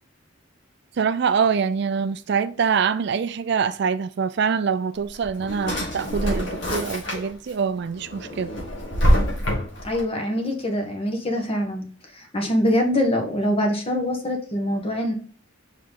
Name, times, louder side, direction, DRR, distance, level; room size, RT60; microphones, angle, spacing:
voice 1, 1.0-8.5, right 6 dB, 55° right, 0.4 m, -24 dB
Drawer open or close, 5.0-7.5 7.9-10.0, equal, 60° left, 2.3 m, -25 dB
voice 2, 9.8-11.9 12.1-15.1, equal, 25° left, 1.2 m, -24 dB
5.5 x 4.8 x 3.8 m
head